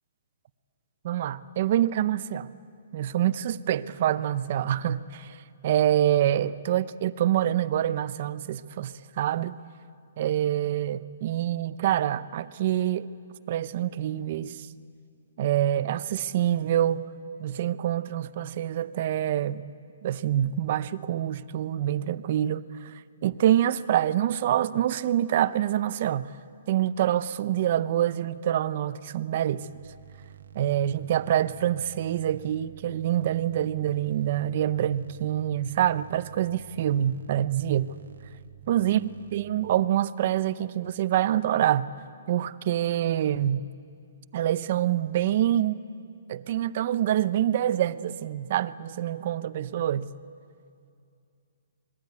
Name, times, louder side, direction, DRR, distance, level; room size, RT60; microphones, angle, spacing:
voice 1, 1.0-2.5 2.9-5.4 5.6-9.6 10.2-13.1 13.5-14.7 15.4-17.1 17.4-19.6 20.0-22.9 23.2-26.3 26.7-29.7 30.5-37.9 38.7-41.9 42.3-43.7 44.3-45.8 46.3-50.1, right 11 dB, 35° right, 0.6 m, -26 dB
sound 1, 29.6-39.7, right 10 dB, 85° right, 1.2 m, -49 dB
27.5 x 21.5 x 9.6 m
hypercardioid pair, 180°, 0 cm